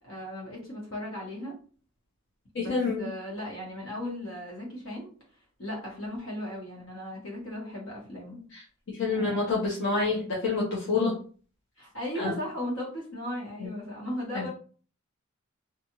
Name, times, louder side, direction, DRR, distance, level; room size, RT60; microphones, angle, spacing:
voice 1, 0.0-1.5 2.6-5.1 5.6-8.4 9.1-9.6 10.0-10.4 11.8-14.5, left 1 dB, 80° left, -4 dB, 1.4 m, -37 dB
voice 2, 2.5-3.1 8.5-8.6 8.9-11.1 12.2-12.3 14.3-14.4, left 3 dB, 65° left, -5 dB, 0.8 m, -27 dB
2.5 x 2.4 x 2.9 m, 0.41 s
head